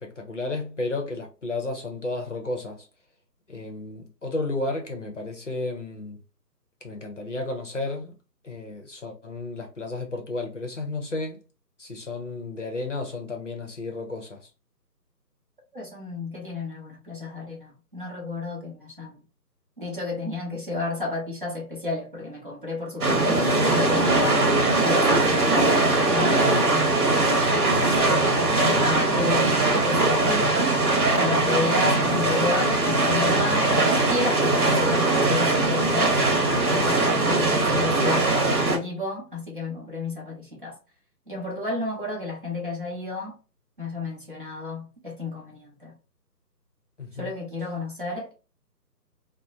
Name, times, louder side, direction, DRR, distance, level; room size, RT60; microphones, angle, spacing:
voice 1, 0.0-2.9 3.5-6.2 6.8-8.2 8.4-11.4 11.8-14.5 47.0-47.3, left 2 dB, 45° left, 0.7 m, -32 dB
voice 2, 15.7-19.2 19.8-24.4 24.8-27.9 28.6-30.7 31.2-33.7 34.1-36.2 36.7-38.3 38.7-40.8 41.3-43.4 43.8-45.9 47.1-48.3, left 3 dB, 30° right, 0.7 m, -32 dB
sound 1, 23.0-38.8, right 2 dB, 60° right, 1.0 m, -21 dB
2.9 x 2.1 x 2.4 m
figure-of-eight pair, 155°, 50 cm